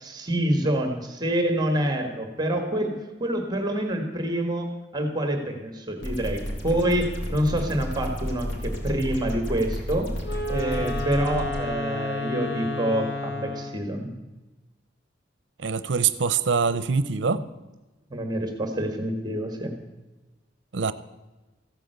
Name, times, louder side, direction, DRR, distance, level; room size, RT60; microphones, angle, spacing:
voice 1, 0.0-10.1 10.5-14.1 17.3-17.4 18.1-19.7, right 1 dB, 25° right, 5 dB, 1.7 m, -27 dB
sound 1, 6.0-11.6, equal, 90° left, 3.8 m, -31 dB
Wind instrument woodwind instrument, 10.2-13.9, left 2 dB, 75° left, 3.6 m, -31 dB
voice 2, 15.6-17.4 20.7-20.9, right 5 dB, 70° right, 14 dB, 0.7 m, -24 dB
15.5 x 9.2 x 8.0 m, 1.1 s
head